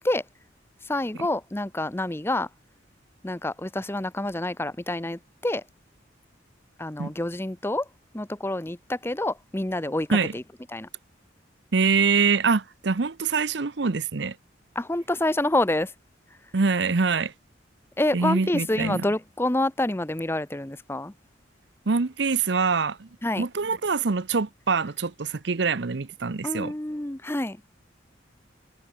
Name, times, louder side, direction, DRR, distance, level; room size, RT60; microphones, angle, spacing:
voice 1, 0.8-2.5 3.2-5.6 6.8-7.9 8.1-10.4 10.7-10.9 14.7-15.9 18.0-21.1 23.2-23.5 26.4-27.6, left 1 dB, 10° left, 0.8 m, -27 dB
voice 2, 11.7-14.4 16.5-17.3 18.1-19.1 21.9-23.1 23.4-26.7, right 4 dB, 60° right, 0.7 m, -24 dB
head